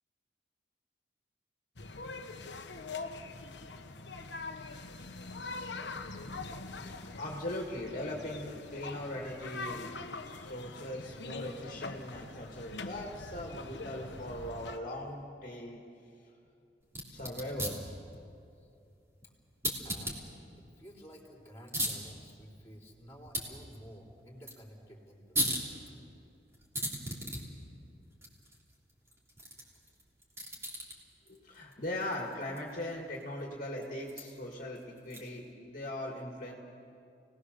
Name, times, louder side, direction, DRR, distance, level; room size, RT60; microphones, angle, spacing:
sound 1, 1.8-14.8, left 3 dB, 85° left, 1.2 m, -43 dB
voice 1, 6.8-9.9 10.2-15.8 17.1-17.8 31.3-36.5, left 1 dB, 50° left, -1 dB, 2.2 m, -40 dB
sound 2, 16.8-35.5, equal, 15° right, 3.2 m, -41 dB
voice 2, 19.8-20.2 20.6-25.7, equal, 15° left, -2 dB, 4.0 m, -52 dB
29.0 x 19.0 x 6.8 m, 2.6 s
head